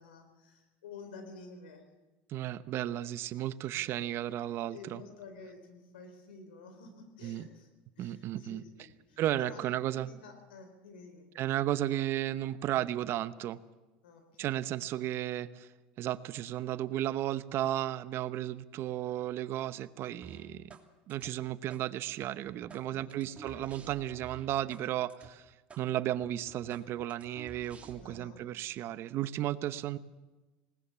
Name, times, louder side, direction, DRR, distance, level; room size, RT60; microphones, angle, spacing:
voice 1, 0.0-1.8 3.8-3.9 4.7-7.7 8.0-11.3 14.0-14.6 22.8-23.7 28.0-28.4, left 3 dB, 85° left, 6 dB, 4.1 m, -51 dB
voice 2, 2.3-5.0 7.2-7.5 8.0-8.6 9.2-10.1 11.4-13.6 14.4-15.7 16.0-20.7 21.1-25.5 25.8-30.0, right 13 dB, 55° right, 14 dB, 0.9 m, -34 dB
sound 1, 20.2-20.8 21.1-21.8 22.2-24.8 25.1-25.3 25.7-25.8 26.2-28.2, right 5 dB, 25° right, 2.9 m, -52 dB
20.0 x 19.0 x 7.1 m, 1.1 s
supercardioid pair, 95°, 5 cm